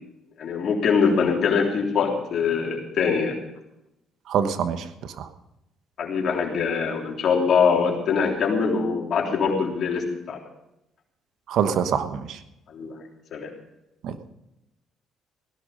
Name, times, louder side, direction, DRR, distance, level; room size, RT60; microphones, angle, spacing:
voice 1, 0.4-3.4 6.0-10.4 12.7-13.0 13.3-13.5, left 5 dB, 60° left, 0 dB, 3.5 m, -23 dB
voice 2, 4.3-5.3 11.5-12.4 14.0-14.2, right 7 dB, 70° right, 10 dB, 1.2 m, -25 dB
17.0 x 11.5 x 5.3 m, 0.88 s
supercardioid pair, 60°, 0 cm